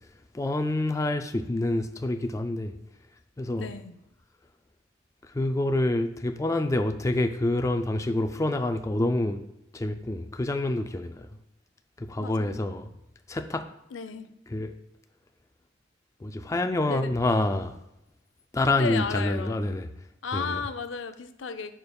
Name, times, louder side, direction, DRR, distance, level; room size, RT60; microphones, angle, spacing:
voice 1, 0.3-2.7 3.4-3.7 5.2-9.4 9.7-11.3 12.0-12.9 13.3-13.7 14.5-14.7 16.2-17.7 18.5-19.9 20.3-20.6, left 2 dB, 15° left, 7 dB, 0.3 m, -27 dB
voice 2, 3.6-4.0 12.2-12.6 13.9-14.3 16.9-17.1 18.7-19.6 20.2-21.7, left 5 dB, 80° left, 10 dB, 0.5 m, -34 dB
12.0 x 5.1 x 2.3 m, 0.86 s
head